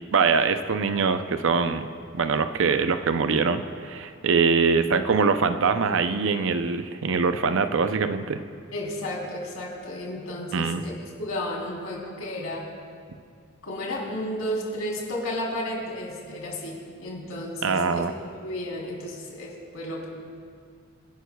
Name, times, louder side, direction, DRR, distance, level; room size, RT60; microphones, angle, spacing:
voice 1, 0.1-1.9 2.1-8.4 10.5-10.8 17.6-18.1, right 5 dB, 65° right, 9 dB, 0.6 m, -23 dB
voice 2, 8.7-10.9 11.2-12.7 13.6-20.1, left 1 dB, 80° left, -3 dB, 3.5 m, -33 dB
27.5 x 11.0 x 2.3 m, 2.2 s
head